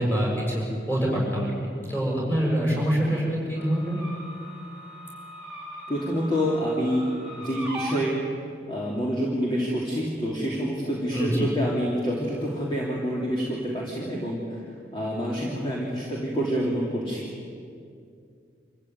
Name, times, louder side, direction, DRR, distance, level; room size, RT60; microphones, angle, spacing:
voice 1, 0.0-4.0 11.1-11.4, equal, 10° left, -3 dB, 6.8 m, -25 dB
sound 1, 3.5-8.0, equal, 5° right, 3.1 m, -40 dB
voice 2, 5.9-8.2 8.7-14.6 14.9-17.2, equal, 25° left, -4 dB, 3.0 m, -27 dB
26.0 x 15.0 x 9.4 m, 2.4 s
head